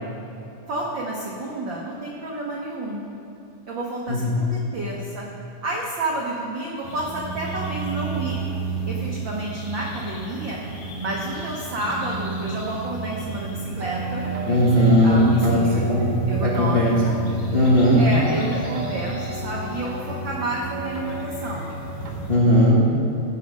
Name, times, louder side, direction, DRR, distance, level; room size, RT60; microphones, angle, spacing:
voice 1, 0.7-3.1 3.7-5.3 5.6-8.4 8.9-10.6 11.0-15.8 16.3-17.2 18.0-21.7, right 2 dB, 85° right, -3 dB, 1.0 m, -30 dB
voice 2, 4.1-4.4 14.4-17.0 17.5-18.0 22.3-22.8, equal, 45° left, -7 dB, 0.7 m, -18 dB
sound 1, 6.8-22.4, right 4 dB, 60° left, 2.8 m, -32 dB
sound 2, 13.8-22.6, right 2 dB, 60° right, 1.5 m, -36 dB
16.0 x 5.4 x 5.2 m, 2.9 s
omnidirectional pair, 3.7 m